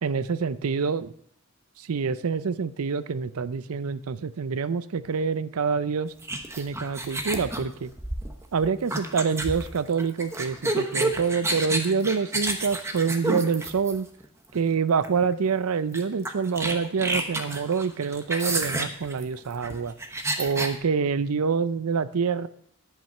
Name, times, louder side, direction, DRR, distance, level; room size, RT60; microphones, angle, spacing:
voice 1, 0.0-1.1 1.8-6.1 6.6-7.9 8.5-14.1 14.5-19.9 20.4-22.5, right 5 dB, 75° right, 15 dB, 0.5 m, -26 dB
sound 1, 6.2-14.2 15.0-15.2 15.5-15.6 15.9-20.7, right 2 dB, 10° right, 1.0 m, -30 dB
10.5 x 8.9 x 5.4 m, 0.66 s
head